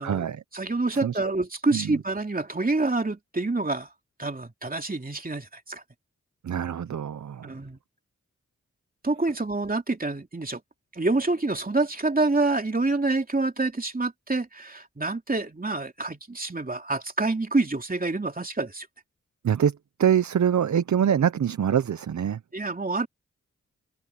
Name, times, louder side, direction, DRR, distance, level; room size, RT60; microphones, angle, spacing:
voice 1, 0.0-0.4 1.0-1.2 1.7-2.0 6.4-7.5 19.4-22.4, right 8 dB, 75° right, 0.7 m, -24 dB
voice 2, 0.5-3.9 4.2-5.8 7.4-7.8 9.0-10.6 10.9-18.9 22.5-23.1, right 3 dB, 30° right, 2.9 m, -27 dB
cardioid pair, 55°, 29 cm